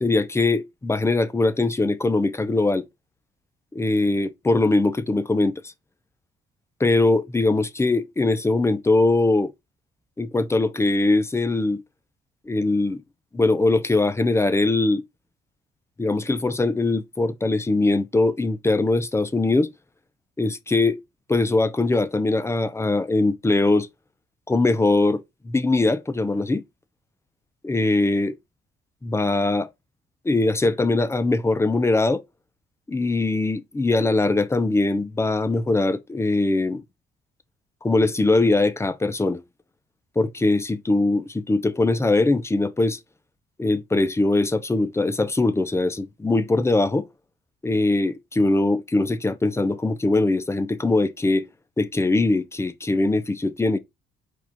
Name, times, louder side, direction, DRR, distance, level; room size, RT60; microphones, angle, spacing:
voice 1, 0.0-2.8 3.7-5.7 6.8-9.5 10.2-11.8 12.5-13.0 13.3-15.0 16.0-19.7 20.4-21.0 21.3-23.9 24.5-26.6 27.6-28.3 29.0-29.7 30.2-32.2 32.9-36.8 37.8-39.4 40.2-43.0 43.6-47.1 47.6-51.5 51.8-53.8, left 2 dB, 15° left, 0.5 m, -21 dB
4.5 x 2.3 x 4.1 m
cardioid pair, 90°, 20 cm